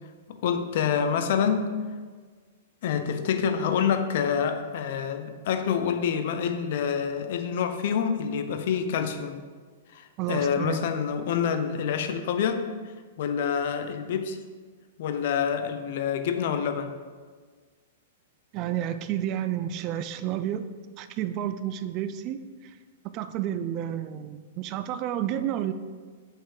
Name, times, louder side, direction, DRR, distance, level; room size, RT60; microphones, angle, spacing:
voice 1, 0.3-1.7 2.8-9.4 9.9-12.7 13.2-14.4 15.0-16.9, left 7 dB, 60° left, 8 dB, 0.7 m, -27 dB
voice 2, 10.2-10.8 18.5-20.7 21.0-22.4 22.6-22.8 23.1-25.7, right 11 dB, 40° right, 11 dB, 0.4 m, -30 dB
5.7 x 5.6 x 4.8 m, 1.5 s
hypercardioid pair, 120°, 0 cm